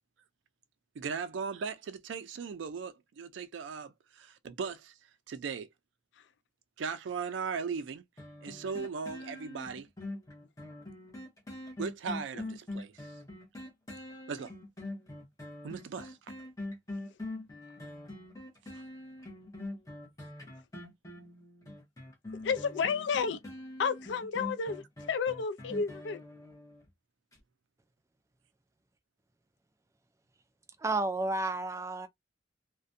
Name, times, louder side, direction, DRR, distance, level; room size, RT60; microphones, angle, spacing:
voice 1, 1.0-4.9 5.3-5.7 6.8-8.0 8.4-9.9 11.8-13.1 14.3-14.5 15.6-16.2, right 5 dB, 90° right, 0.4 m, -38 dB
sound 1, 8.2-26.9 27.3-27.4, left 2 dB, 20° left, 0.8 m, -43 dB
voice 2, 22.4-23.4 23.8-26.2, left 5 dB, 75° left, 0.4 m, -31 dB
voice 3, 30.8-32.1, right 2 dB, 15° right, 0.3 m, -31 dB
2.5 x 2.1 x 2.5 m
head